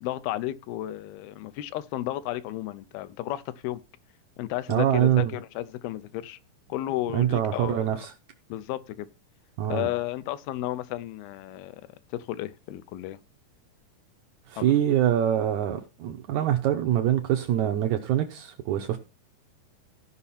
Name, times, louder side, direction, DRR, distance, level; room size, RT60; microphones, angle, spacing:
voice 1, 0.0-3.8 4.4-6.4 6.7-7.9 8.5-9.1 9.7-11.8 12.1-13.2 14.6-14.7, left 15 dB, 85° left, 2.6 m, -33 dB
voice 2, 4.7-5.3 7.1-8.1 9.6-9.9 14.5-19.0, right 11 dB, 80° right, 1.7 m, -24 dB
15.5 x 5.5 x 4.2 m
omnidirectional pair, 4.4 m